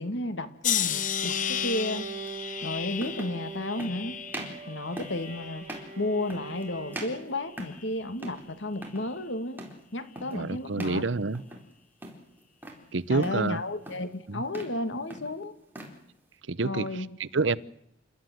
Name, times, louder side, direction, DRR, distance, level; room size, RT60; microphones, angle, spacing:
voice 1, 0.0-2.1 2.6-4.2 4.7-5.7 6.0-9.6 9.9-11.1 13.1-15.5 16.6-17.1, left 1 dB, 85° left, 2.4 m, -32 dB
sound 1, 0.6-5.8 6.2-6.9 7.6-8.0, left 10 dB, 45° left, 0.9 m, -34 dB
sound 2, 0.8-1.0 2.3-2.4 3.0-3.4 3.8-4.0 4.3-4.6 5.0-5.2 5.6-5.9 6.3-6.6 6.9-7.9 8.2-8.5 8.7-9.1 9.6-9.8 10.2-10.4 10.8-11.0 11.3-11.7 12.0-12.8 13.2-13.5 13.8-14.1 14.4-14.8 15.1-16.0, right 1 dB, 10° right, 4.1 m, -41 dB
Bowed string instrument, 0.8-7.6, right 4 dB, 40° right, 4.2 m, -42 dB
voice 2, 10.3-11.4 12.9-13.6 14.3-14.4 16.5-16.9 17.2-17.6, right 3 dB, 85° right, 0.8 m, -27 dB
28.5 x 13.0 x 9.4 m
head